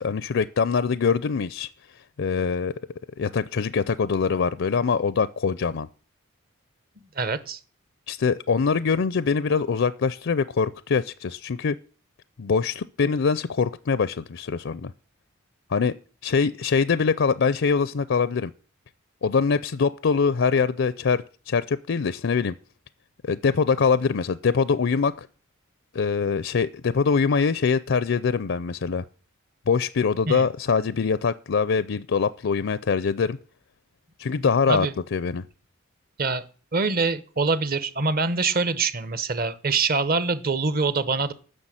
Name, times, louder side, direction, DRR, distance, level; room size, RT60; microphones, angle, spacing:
voice 1, 0.0-1.7 2.2-2.7 3.2-5.9 8.1-11.8 12.4-14.9 15.7-16.0 16.2-18.5 19.2-22.5 23.2-25.3 25.9-29.0 29.7-33.4 34.2-35.4, left 5 dB, 60° left, 0.4 m, -23 dB
voice 2, 7.2-7.6 30.3-30.5 34.4-34.9 36.2-36.4 36.7-41.3, right 4 dB, 45° right, 0.9 m, -25 dB
9.7 x 6.7 x 9.0 m
head